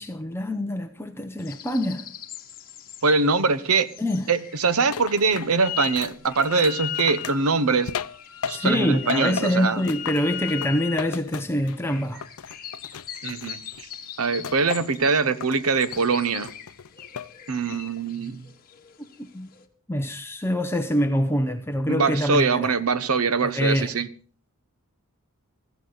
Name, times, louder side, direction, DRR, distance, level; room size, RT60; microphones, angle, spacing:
voice 1, 0.0-2.1 4.0-4.2 8.5-12.2 19.3-19.5 19.9-22.7 23.4-23.9, equal, 10° left, 0.7 m, -25 dB
sound 1, 1.4-19.7, left 9 dB, 40° left, 1.5 m, -45 dB
voice 2, 3.0-3.9 4.3-7.9 8.5-9.8 13.2-13.6 14.2-16.5 17.5-18.4 21.9-24.1, right 4 dB, 75° right, 0.9 m, -23 dB
sound 2, 4.9-8.8 9.1-11.9 12.2-13.8 14.4-15.0 15.4-16.0 16.4-17.3 17.7-18.1, left 7 dB, 80° left, 0.6 m, -36 dB
Wind instrument woodwind instrument, 5.6-6.0 6.3-11.1, left 11 dB, 60° left, 1.3 m, -35 dB
16.0 x 14.0 x 4.0 m
head